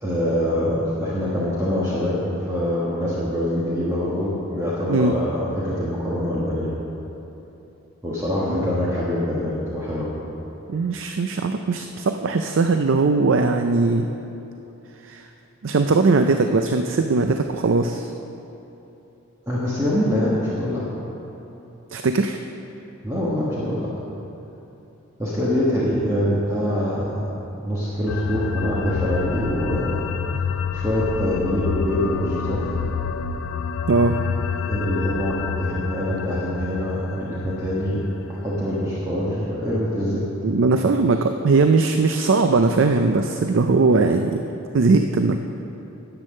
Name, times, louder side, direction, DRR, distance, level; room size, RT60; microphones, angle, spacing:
voice 1, 0.0-6.7 8.0-10.1 19.5-20.9 23.0-23.9 25.2-30.4 30.7-32.7 34.6-38.0 38.3-40.3, left 1 dB, 15° right, -8 dB, 1.4 m, -24 dB
voice 2, 10.7-14.1 15.0-15.3 15.6-18.1 21.9-22.4 33.9-34.2 40.4-44.4 44.7-45.4, right 3 dB, 60° right, 6 dB, 0.4 m, -19 dB
sound 1, 28.1-38.9, left 6 dB, 70° left, 0.5 m, -28 dB
10.5 x 8.2 x 6.5 m, 3.0 s
head